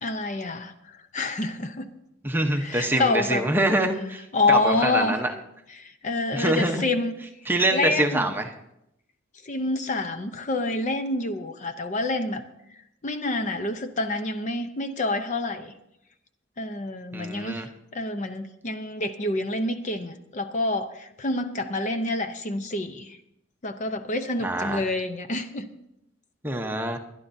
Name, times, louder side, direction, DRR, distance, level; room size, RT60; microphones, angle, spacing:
voice 1, 0.0-1.9 2.6-3.5 4.3-5.2 5.8-7.1 7.7-8.3 9.4-12.4 13.0-15.7 16.6-17.6 17.9-23.2 23.6-25.7, left 2 dB, 40° left, 8 dB, 0.7 m, -27 dB
voice 2, 2.2-5.3 6.3-6.8 7.5-8.5 17.1-17.7 24.4-24.8 26.4-27.0, right 1 dB, 10° right, 3 dB, 0.9 m, -25 dB
21.5 x 11.5 x 2.7 m, 0.82 s
head